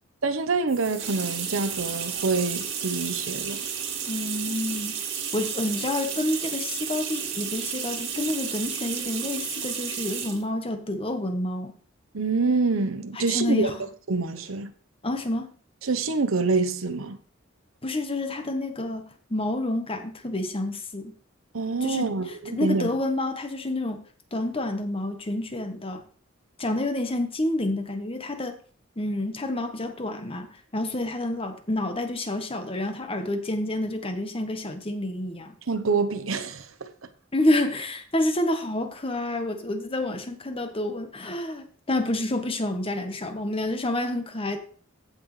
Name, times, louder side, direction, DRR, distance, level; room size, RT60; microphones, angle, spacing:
voice 1, 0.2-3.6 12.1-13.7 14.1-14.7 15.8-17.2 21.5-22.9 35.7-36.9, right 4 dB, 90° right, 1.0 m, -26 dB
sound 1, 0.7-10.5, right 7 dB, 65° right, 2.1 m, -32 dB
voice 2, 4.1-5.0 5.3-11.7 13.1-13.9 15.0-15.5 17.8-21.2 21.8-22.1 22.5-24.0 24.3-26.1 26.6-28.6 29.0-35.5 37.3-44.6, left 1 dB, 30° left, 1.3 m, -28 dB
15.5 x 6.1 x 3.3 m
head